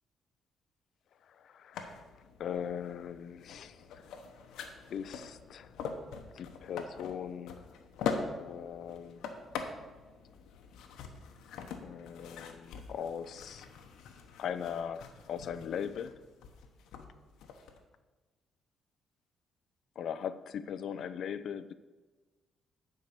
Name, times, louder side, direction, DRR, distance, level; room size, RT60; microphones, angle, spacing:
voice 1, 1.3-2.0 2.4-4.0 4.9-5.7 6.3-7.8 8.4-9.2 11.8-13.7 14.4-16.2 20.0-21.7, left 8 dB, 65° left, 13 dB, 0.5 m, -39 dB
sound 1, 1.7-17.8, left 5 dB, 85° left, 1.0 m, -43 dB
9.8 x 4.6 x 6.7 m, 1.3 s
cardioid pair, 90°, 0 cm